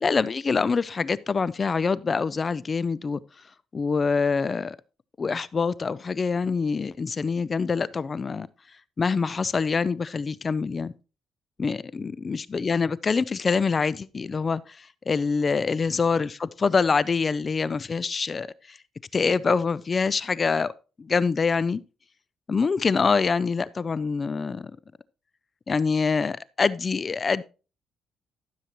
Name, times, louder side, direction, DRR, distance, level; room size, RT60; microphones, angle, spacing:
voice 1, 0.0-3.2 3.7-4.8 5.2-8.5 9.0-10.9 11.6-18.8 19.1-20.7 21.0-21.8 22.5-24.7 25.7-27.4, left 5 dB, 35° left, 0.4 m, -25 dB
13.0 x 7.4 x 3.0 m
cardioid pair, 90°, 0 cm